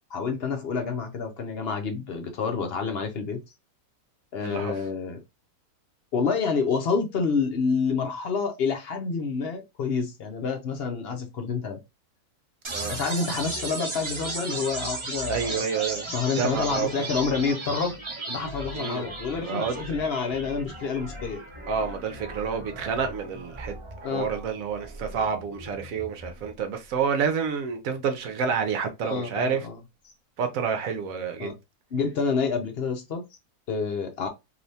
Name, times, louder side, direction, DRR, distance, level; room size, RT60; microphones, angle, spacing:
voice 1, 0.1-3.4 4.3-5.2 6.1-11.8 12.9-15.6 16.1-17.9 18.3-21.4 24.0-24.2 29.0-29.8 31.4-31.5 31.9-33.2 33.7-34.3, left 5 dB, 60° left, 0.7 m, -28 dB
voice 2, 4.4-4.7 12.7-13.0 15.3-16.1 16.4-16.9 18.7-19.0 19.4-19.8 21.7-23.7 24.0-29.7 30.4-31.6, right 6 dB, 70° right, 1.0 m, -28 dB
sound 1, 12.6-26.6, right 2 dB, 30° right, 0.6 m, -36 dB
3.3 x 2.8 x 2.7 m
omnidirectional pair, 1.7 m